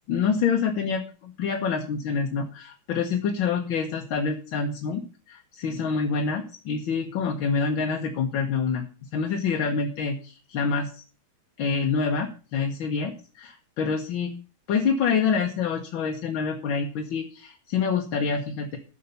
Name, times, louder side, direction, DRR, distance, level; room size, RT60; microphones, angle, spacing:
voice 1, 0.1-8.8 9.1-11.1 11.6-14.3 14.7-18.8, left 5 dB, 75° left, 3 dB, 1.9 m, -27 dB
11.0 x 6.7 x 6.8 m, 0.37 s
omnidirectional pair, 2.2 m